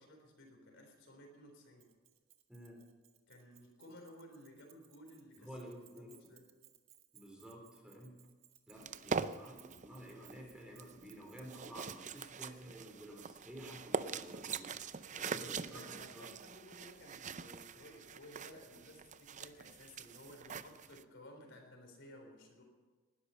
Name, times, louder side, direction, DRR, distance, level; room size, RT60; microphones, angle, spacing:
voice 1, 0.0-1.9 3.3-5.5 5.9-6.5 8.7-8.9 15.1-22.6, equal, 60° left, 3 dB, 3.8 m, -56 dB
Keys jangling, 1.8-12.4, right 13 dB, 70° right, 1.6 m, -64 dB
voice 2, 2.5-2.9 5.4-6.2 7.1-8.2 8.7-14.8 15.2-16.3, equal, 5° right, 0 dB, 3.6 m, -52 dB
sound 1, 8.8-21.0, right 5 dB, 35° right, 0.5 m, -43 dB
19.5 x 12.0 x 5.6 m, 1.4 s
head